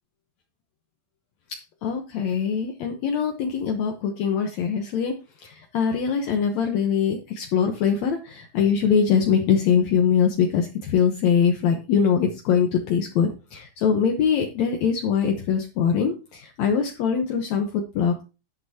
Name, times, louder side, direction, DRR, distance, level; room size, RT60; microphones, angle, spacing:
voice 1, 1.8-5.1 5.4-18.2, left 7 dB, 70° left, 3 dB, 2.2 m, -23 dB
11.0 x 7.9 x 2.8 m, 0.31 s
omnidirectional pair, 3.5 m